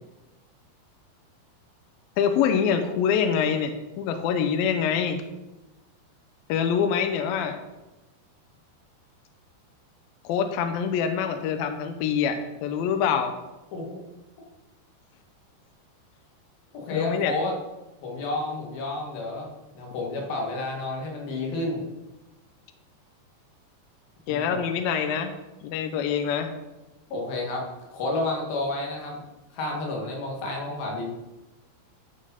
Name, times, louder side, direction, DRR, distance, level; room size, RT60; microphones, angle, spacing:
voice 1, 2.2-5.2 6.5-7.6 10.2-13.3 16.9-17.3 24.3-25.3 25.6-26.5, left 7 dB, 80° left, 7 dB, 2.1 m, -25 dB
voice 2, 13.7-14.0 16.7-17.5 18.0-19.5 19.8-21.9 24.3-24.6 27.1-27.7 27.9-29.2 29.5-31.1, left 2 dB, 60° left, 0 dB, 3.6 m, -30 dB
13.0 x 5.4 x 5.7 m, 1.0 s
omnidirectional pair, 5.1 m